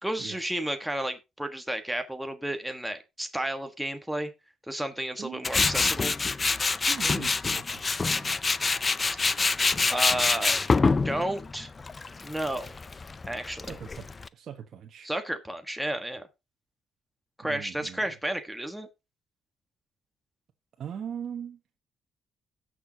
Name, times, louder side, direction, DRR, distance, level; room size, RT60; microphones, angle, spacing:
voice 1, 0.0-4.3 4.7-6.1 9.9-10.7 11.0-11.7 12.2-12.7 13.3-13.6 15.0-16.3 17.4-18.9, right 1 dB, 5° right, 1.3 m, -32 dB
Tools, 5.4-14.3, left 4 dB, 30° left, 0.5 m, -26 dB
voice 2, 6.9-8.3 13.6-15.1 17.4-18.0 20.8-21.6, right 8 dB, 60° right, 1.2 m, -40 dB
17.0 x 6.4 x 2.8 m
cardioid pair, 90°, 0 cm